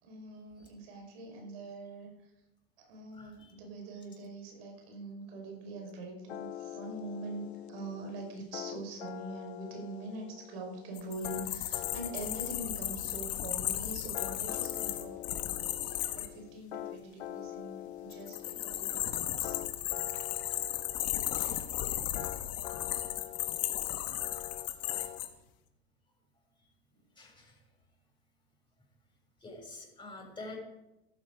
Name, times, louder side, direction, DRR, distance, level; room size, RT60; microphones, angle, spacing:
voice 1, 0.0-2.3 2.9-19.6, right 2 dB, 65° right, 2 dB, 5.4 m, -44 dB
voice 2, 3.1-3.5 21.4-21.7 25.0-25.1 27.2-27.6 29.4-30.6, left 2 dB, 15° left, -1 dB, 6.6 m, -47 dB
sound 1, 6.3-25.2, left 13 dB, 85° left, 0.9 m, -45 dB
sound 2, 11.0-16.3 18.1-25.3, left 13 dB, 50° left, 1.9 m, -35 dB
14.5 x 12.0 x 5.0 m, 0.96 s
hypercardioid pair, 95°, 32 cm